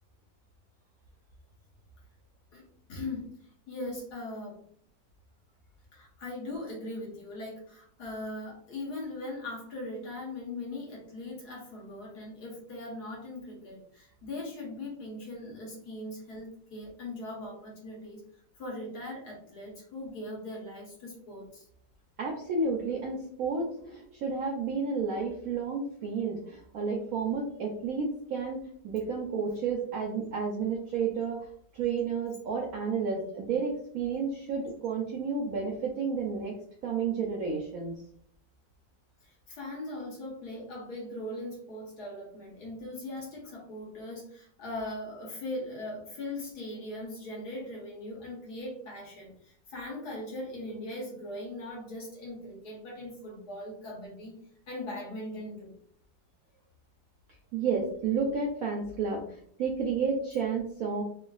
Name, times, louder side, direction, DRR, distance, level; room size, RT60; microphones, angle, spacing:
voice 1, 2.9-3.3 3.7-4.6 5.9-18.2 18.6-21.6 39.2-54.3 54.7-55.7, left 1 dB, 60° left, -3 dB, 1.4 m, -40 dB
voice 2, 22.2-31.5 31.7-36.5 36.8-37.9 57.5-61.0, right 5 dB, 75° right, -1 dB, 0.8 m, -31 dB
3.3 x 2.4 x 2.2 m, 0.62 s
omnidirectional pair, 2.0 m